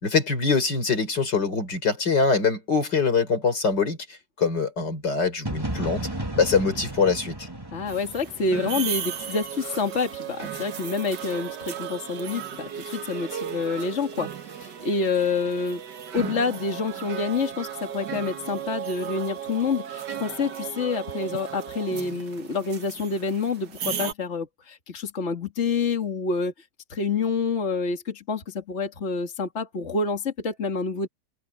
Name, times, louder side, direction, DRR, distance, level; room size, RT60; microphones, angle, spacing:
voice 1, 0.0-4.0 4.4-6.1 6.3-7.5, left 4 dB, 85° left, 5.1 m, -23 dB
sound 1, 5.4-9.3, right 1 dB, 15° right, 2.7 m, -34 dB
voice 2, 7.7-15.8 16.1-26.5 26.9-31.1, left 4 dB, 40° left, 2.4 m, -28 dB
sound 2, 7.9-24.1, right 9 dB, 85° right, 2.0 m, -35 dB
omnidirectional pair, 1.8 m